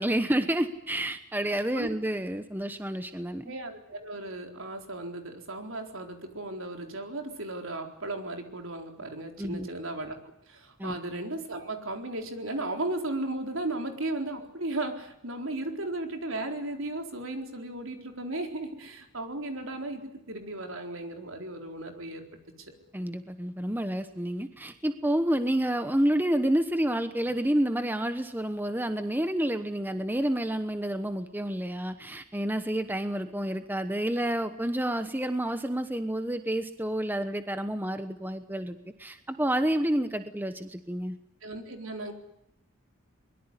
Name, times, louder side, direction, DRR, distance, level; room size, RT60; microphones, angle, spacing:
voice 1, 0.0-3.5 9.4-9.7 10.8-11.0 22.9-41.2, right 1 dB, 10° right, 9 dB, 1.0 m, -29 dB
voice 2, 3.5-10.2 10.5-20.0 20.3-22.2 22.7-22.8 41.4-42.1, right 2 dB, 65° right, 4 dB, 4.1 m, -35 dB
22.5 x 22.0 x 9.8 m, 0.82 s
head